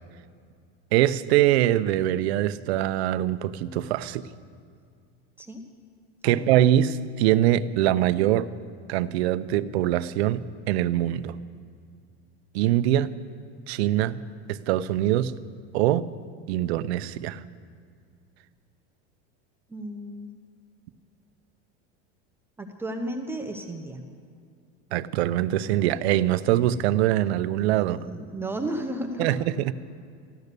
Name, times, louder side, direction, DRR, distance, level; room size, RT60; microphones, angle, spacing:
voice 1, 0.9-4.2 6.2-8.5 8.9-11.4 12.5-13.1 13.7-14.2 14.5-15.3 15.7-16.1 16.5-17.4 24.9-28.1 29.2-29.7, right 13 dB, 85° right, 14 dB, 0.7 m, -23 dB
voice 2, 19.7-20.3 22.6-24.0 27.9-29.4, right 1 dB, 5° right, 3 dB, 0.6 m, -33 dB
15.0 x 12.0 x 6.7 m, 2.2 s
supercardioid pair, 160°, 31 cm